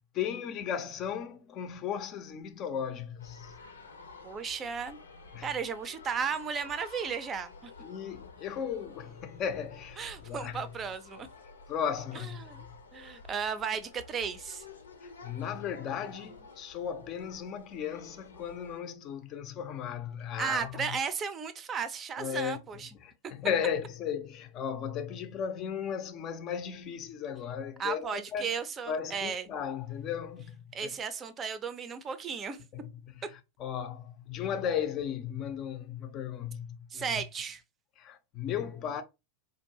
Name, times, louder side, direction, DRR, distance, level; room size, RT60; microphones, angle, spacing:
voice 1, 0.1-3.6 5.3-5.5 7.8-10.7 11.7-12.8 15.0-20.9 22.2-22.6 23.0-28.5 28.9-30.9 32.7-32.9 33.2-37.1 38.0-39.0, left 8 dB, 35° left, 0.6 m, -36 dB
sound 1, 3.2-18.8, left 4 dB, 75° left, 0.7 m, -51 dB
voice 2, 4.2-5.0 5.4-7.7 10.0-11.3 12.4-12.7 12.9-14.7 20.4-22.9 27.8-29.5 30.7-32.6 36.9-37.6, right 6 dB, 25° right, 0.6 m, -35 dB
4.4 x 2.6 x 2.8 m
figure-of-eight pair, 90°, 0 cm